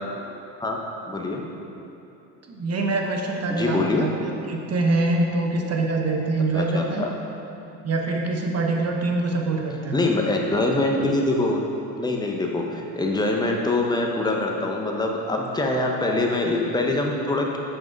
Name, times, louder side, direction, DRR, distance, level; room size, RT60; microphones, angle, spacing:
voice 1, 1.1-1.4 3.5-4.1 6.5-7.4 9.9-11.7 12.0-17.6, left 2 dB, 10° left, 0 dB, 0.8 m, -24 dB
voice 2, 2.5-7.0 7.8-10.0, right 2 dB, 35° right, 1 dB, 1.0 m, -24 dB
6.2 x 5.3 x 4.6 m, 2.9 s
supercardioid pair, 90°, 41 cm